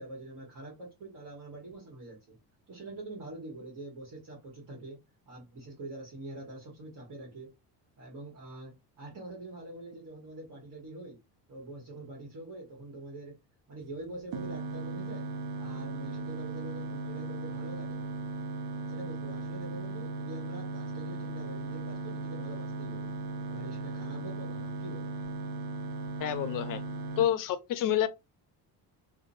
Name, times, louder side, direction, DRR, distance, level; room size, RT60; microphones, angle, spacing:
voice 1, 0.0-2.4 2.7-5.0 5.3-7.5 8.0-11.2 11.5-13.4 13.7-15.3 15.6-18.2 18.8-23.1 23.5-25.1, right 2 dB, 45° right, 1.3 m, -45 dB
sound 1, 14.3-27.3, right 3 dB, 70° right, 0.7 m, -37 dB
voice 2, 26.2-26.8 27.2-28.1, left 10 dB, 50° left, 0.5 m, -28 dB
2.7 x 2.2 x 2.6 m
cardioid pair, 95°, 44 cm